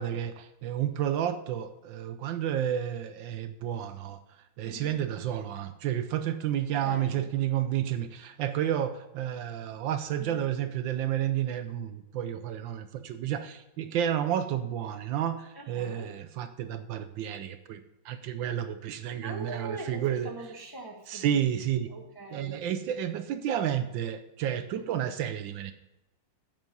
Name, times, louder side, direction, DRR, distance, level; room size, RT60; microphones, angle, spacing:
voice 1, 0.0-4.2 4.6-20.3 21.1-21.9 22.3-25.7, right 10 dB, 75° right, 10 dB, 1.2 m, -31 dB
voice 2, 4.6-5.0 6.7-7.3 10.2-10.5 15.5-16.1 19.2-21.4 21.7-22.6 24.7-25.0, right 2 dB, 15° left, 0 dB, 0.8 m, -42 dB
8.9 x 7.4 x 5.4 m, 0.93 s
omnidirectional pair, 2.3 m